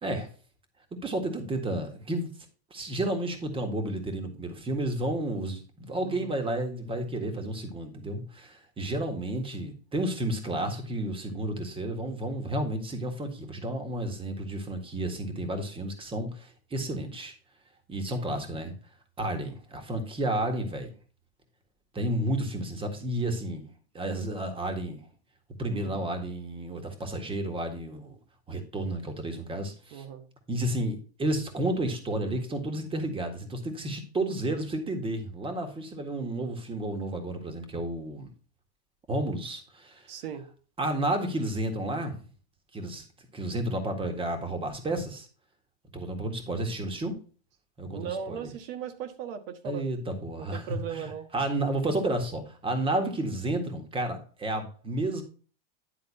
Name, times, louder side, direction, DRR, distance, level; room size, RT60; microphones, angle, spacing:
voice 1, 1.0-2.3 2.7-17.3 17.9-18.7 19.2-20.9 21.9-23.6 23.9-25.0 25.6-28.2 28.5-30.0 30.5-38.3 39.1-40.1 40.8-42.2 42.7-43.1 43.3-45.3 45.9-47.1 47.8-48.5 49.6-55.2, right 1 dB, 15° right, 1.7 m, -31 dB
voice 2, 25.7-26.0 29.9-30.2 40.1-40.4 47.9-49.9 50.4-51.3, right 8 dB, 65° right, 1.5 m, -38 dB
10.5 x 3.8 x 5.4 m
supercardioid pair, 130°, 31 cm